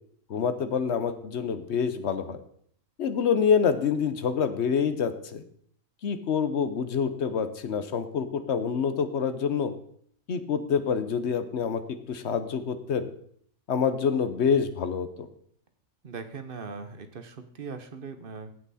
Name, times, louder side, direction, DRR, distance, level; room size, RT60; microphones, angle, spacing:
voice 1, 0.3-2.4 3.0-5.4 6.0-9.7 10.3-11.8 12.1-13.1 13.7-15.3, left 6 dB, 55° left, 10 dB, 1.0 m, -26 dB
voice 2, 16.0-18.5, right 5 dB, 45° right, 9 dB, 1.0 m, -40 dB
15.5 x 5.9 x 4.1 m, 0.63 s
omnidirectional pair, 1.5 m